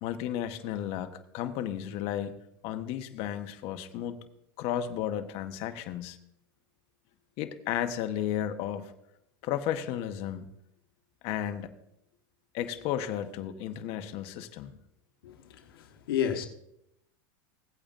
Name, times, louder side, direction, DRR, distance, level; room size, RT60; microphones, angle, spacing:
voice 1, 0.0-2.4 2.6-4.2 4.6-6.2 7.4-8.9 9.4-10.5 11.2-11.7 12.5-14.8, left 10 dB, 55° left, 1.0 m, -33 dB
voice 2, 15.2-16.5, left 9 dB, 90° left, 1.2 m, -32 dB
16.5 x 8.6 x 2.5 m
supercardioid pair, 115°, 12 cm